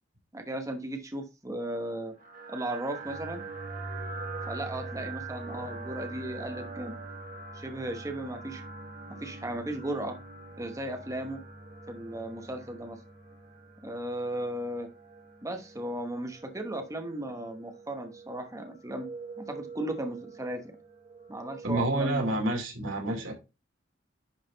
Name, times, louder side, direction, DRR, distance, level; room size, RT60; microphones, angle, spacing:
voice 1, 0.3-2.1 2.5-3.4 4.5-7.0 7.5-8.6 9.2-10.2 10.6-11.4 11.9-13.0 13.8-14.9 15.4-19.1 19.4-20.6 21.3-22.3, right 1 dB, 15° right, 1.0 m, -36 dB
sound 1, 2.2-21.9, right 3 dB, 45° right, 1.7 m, -43 dB
voice 2, 21.6-23.3, right 1 dB, 90° right, 2.7 m, -28 dB
10.5 x 4.0 x 3.9 m
head